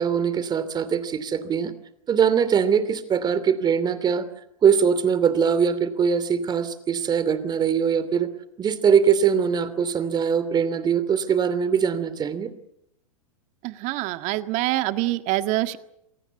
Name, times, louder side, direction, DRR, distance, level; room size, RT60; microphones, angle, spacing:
voice 1, 0.0-1.7 2.1-4.3 4.6-8.3 8.6-12.5, right 7 dB, 25° right, 14 dB, 2.8 m, -22 dB
voice 2, 13.6-15.8, right 17 dB, 45° right, 10 dB, 1.7 m, -25 dB
28.0 x 18.0 x 8.5 m, 0.82 s
hypercardioid pair, 115°, 17 cm